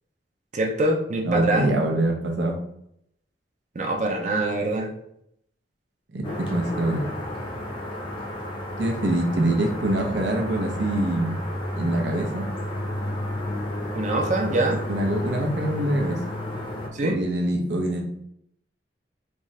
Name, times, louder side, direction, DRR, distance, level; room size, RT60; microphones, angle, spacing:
voice 1, 0.5-1.7 3.8-4.9 13.9-14.8 16.9-17.2, right 2 dB, 45° right, 1 dB, 0.5 m, -24 dB
voice 2, 1.2-2.6 6.1-7.1 8.8-11.4 11.7-12.5 14.9-16.2 17.0-18.0, right 1 dB, 80° right, 1 dB, 0.8 m, -24 dB
sound 1, 6.2-16.9, left 1 dB, 30° left, 0.7 m, -32 dB
3.5 x 2.7 x 3.1 m, 0.75 s
head